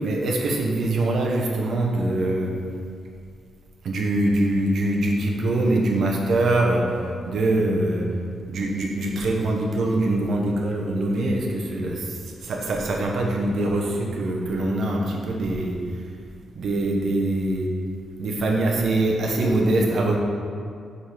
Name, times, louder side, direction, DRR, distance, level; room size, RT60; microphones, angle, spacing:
voice 1, 0.0-2.5 3.8-7.0 7.3-8.0 8.5-15.8 16.5-17.7 18.2-20.2, right 2 dB, 60° right, -1 dB, 1.0 m, -23 dB
5.4 x 4.6 x 5.0 m, 2.3 s
wide cardioid pair, 150°, 0 cm